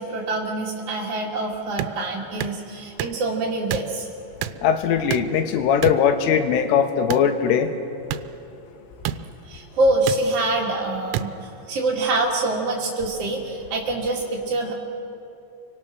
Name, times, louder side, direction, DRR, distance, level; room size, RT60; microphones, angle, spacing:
voice 1, 0.0-4.1 9.4-14.7, right 2 dB, 40° right, -4 dB, 2.3 m, -25 dB
sound 1, 1.8-1.9 2.4-2.6 3.0-3.2 3.7-3.9 4.4-4.6 5.1-5.4 5.8-6.0 7.1-7.3 8.1-8.2 9.0-9.2 10.1-10.2 11.1-11.3, right 12 dB, 90° right, 3.3 m, -27 dB
voice 2, 4.6-7.7, left 8 dB, 85° left, 7 dB, 3.9 m, -20 dB
29.5 x 24.0 x 6.3 m, 2.7 s
omnidirectional pair, 5.7 m